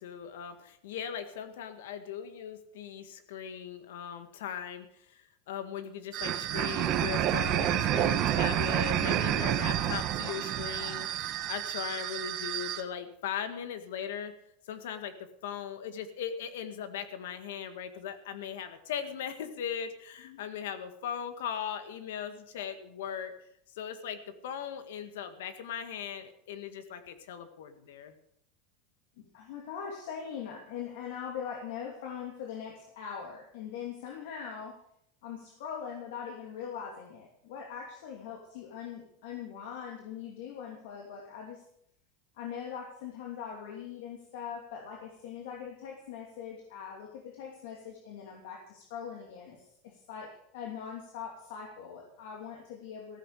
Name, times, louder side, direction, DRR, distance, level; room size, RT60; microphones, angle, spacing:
voice 1, 0.0-14.3 14.7-23.3 23.8-28.1, left 8 dB, 90° left, 9 dB, 2.0 m, -39 dB
sound 1, 6.1-12.8, right 11 dB, 40° right, 1.3 m, -29 dB
voice 2, 29.2-34.8 35.2-41.6 42.3-53.2, left 7 dB, 70° left, 0 dB, 2.9 m, -41 dB
15.0 x 14.5 x 5.0 m, 0.72 s
supercardioid pair, 155°, 0 cm